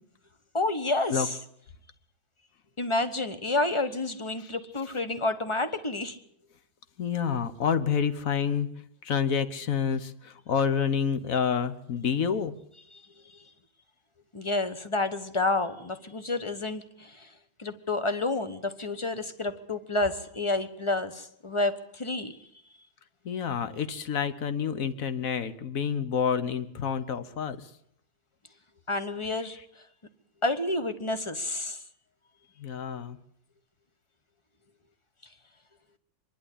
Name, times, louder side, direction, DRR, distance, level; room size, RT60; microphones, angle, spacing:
voice 1, 0.5-1.4 2.8-6.2 12.9-13.5 14.3-17.3 17.6-22.5 28.9-29.8 30.4-31.8, left 2 dB, 25° left, 10 dB, 0.8 m, -30 dB
voice 2, 7.0-8.7 9.0-12.5 23.2-27.7 32.6-33.2, left 7 dB, 50° left, 11 dB, 1.3 m, -28 dB
24.0 x 11.5 x 9.9 m, 0.71 s
omnidirectional pair, 2.1 m